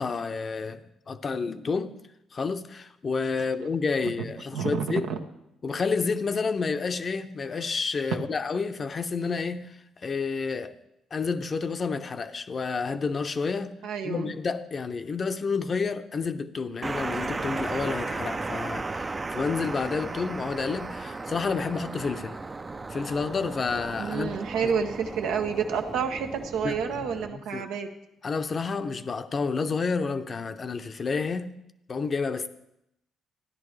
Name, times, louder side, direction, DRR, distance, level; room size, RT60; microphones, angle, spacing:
voice 1, 0.0-2.0 2.3-5.1 5.6-10.8 11.1-13.8 14.0-22.4 22.9-24.3 24.6-24.7 26.6-27.7 28.2-31.5 31.9-32.5, left 4 dB, 40° left, 0.6 m, -30 dB
voice 2, 4.5-5.2 13.8-14.3 24.0-27.9, right 6 dB, 90° right, 0.9 m, -29 dB
sound 1, 16.8-27.3, right 3 dB, 25° right, 0.4 m, -35 dB
13.5 x 10.5 x 3.2 m
cardioid pair, 90°, 0 cm